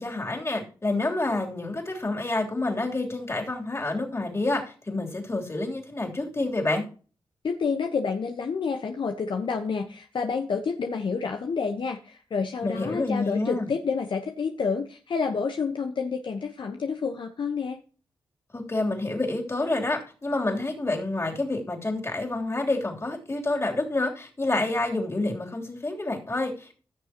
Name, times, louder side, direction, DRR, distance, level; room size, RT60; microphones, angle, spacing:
voice 1, 0.0-6.8 12.6-13.7 18.5-26.7, left 2 dB, 30° left, 1 dB, 3.3 m, -28 dB
voice 2, 7.4-17.8, left 5 dB, 65° left, 4 dB, 1.1 m, -29 dB
16.0 x 6.6 x 2.9 m, 0.38 s
cardioid pair, 60°, 9 cm